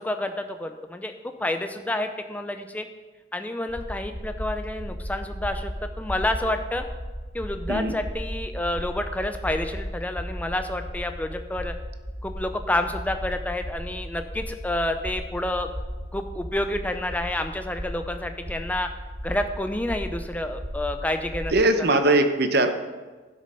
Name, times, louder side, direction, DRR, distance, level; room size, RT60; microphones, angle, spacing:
voice 1, 0.0-2.9 3.3-6.8 7.3-11.7 12.2-15.7 16.1-18.9 19.2-21.5 21.9-22.2, left 1 dB, 10° left, 7 dB, 0.5 m, -29 dB
sound 1, 3.7-21.5, equal, 30° right, 1.5 m, -35 dB
voice 2, 21.5-22.7, right 2 dB, 55° right, 7 dB, 0.9 m, -20 dB
12.0 x 6.4 x 5.4 m, 1.3 s
head